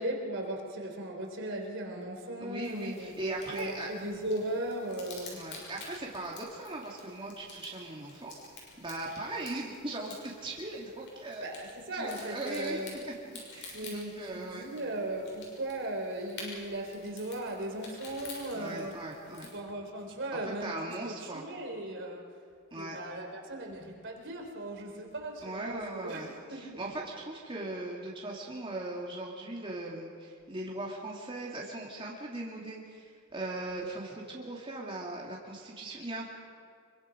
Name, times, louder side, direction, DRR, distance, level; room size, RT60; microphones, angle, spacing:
voice 1, 0.0-3.1 3.5-5.5 11.4-13.0 13.7-19.0 19.4-22.3 22.8-26.8, right 1 dB, 60° right, 2 dB, 3.7 m, -37 dB
voice 2, 2.4-3.9 5.3-8.3 8.8-11.5 11.9-12.8 13.5-14.6 18.5-19.5 20.4-21.4 22.7-23.0 25.4-36.2, right 2 dB, 25° right, -3 dB, 2.5 m, -39 dB
sound 1, 2.6-19.6, left 3 dB, 60° left, 6.7 m, -50 dB
25.5 x 23.5 x 5.2 m, 2.3 s
head